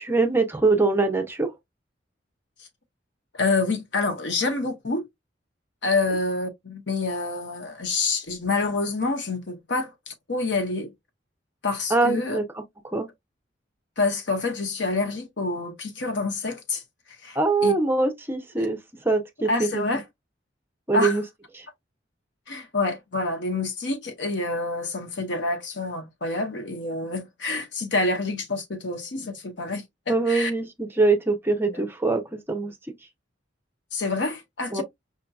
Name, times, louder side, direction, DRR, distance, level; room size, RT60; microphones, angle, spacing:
voice 1, 0.0-1.5 11.9-12.6 12.9-13.1 17.4-18.8 19.0-20.0 20.9-21.2 21.5-21.7 30.1-32.7 34.7-34.8, right 3 dB, 10° right, 0.6 m, -23 dB
voice 2, 3.3-5.0 5.8-10.9 11.6-12.4 14.0-16.8 17.2-17.4 17.6-17.7 19.5-20.0 20.9-21.1 22.5-30.5 31.7-31.8 33.9-34.8, left 3 dB, 70° left, 1.0 m, -27 dB
5.1 x 2.7 x 2.3 m
head